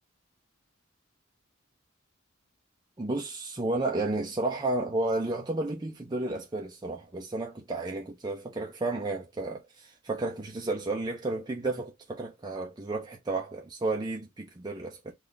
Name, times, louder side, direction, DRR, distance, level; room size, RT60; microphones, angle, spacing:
voice 1, 3.0-15.1, right 2 dB, 20° right, 0.5 m, -32 dB
3.8 x 2.4 x 3.2 m
head